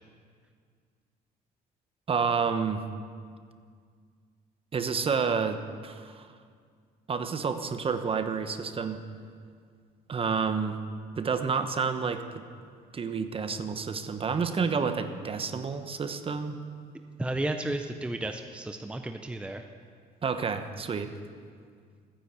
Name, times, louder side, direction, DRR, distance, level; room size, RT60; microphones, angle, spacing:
voice 1, 2.1-2.8 4.7-6.3 7.1-9.0 10.1-10.8 11.2-12.4 12.9-16.6 20.2-21.1, right 5 dB, 35° right, 8 dB, 1.1 m, -29 dB
voice 2, 17.2-19.6, right 1 dB, 5° right, 6 dB, 0.7 m, -33 dB
15.0 x 10.0 x 8.2 m, 2.1 s
cardioid pair, 110°, 17 cm